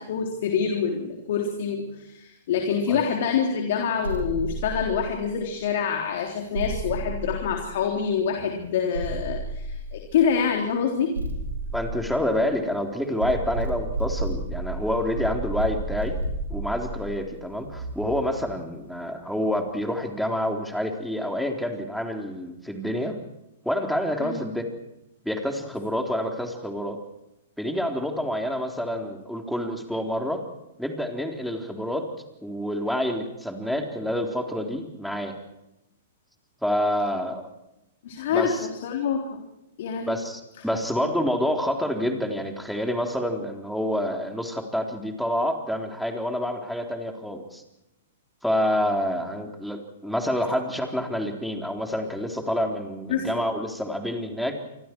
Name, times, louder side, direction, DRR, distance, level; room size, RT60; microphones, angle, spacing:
voice 1, 0.0-11.1 24.2-24.3 38.0-39.4 39.8-40.2 53.1-53.4, left 7 dB, 60° left, 2 dB, 3.6 m, -26 dB
sound 1, 4.0-5.5 6.5-8.2 8.9-10.3 11.1-12.7 13.2-18.5, right 2 dB, 85° right, 5.3 m, -32 dB
voice 2, 11.7-16.2 16.5-23.2 23.6-24.7 25.2-27.0 27.6-30.5 30.8-32.1 32.4-35.4 36.6-37.5 38.3-38.7 40.1-47.6 48.4-54.5, equal, ahead, 3 dB, 3.8 m, -28 dB
28.5 x 25.0 x 4.7 m, 0.90 s
hypercardioid pair, 115°, 0 cm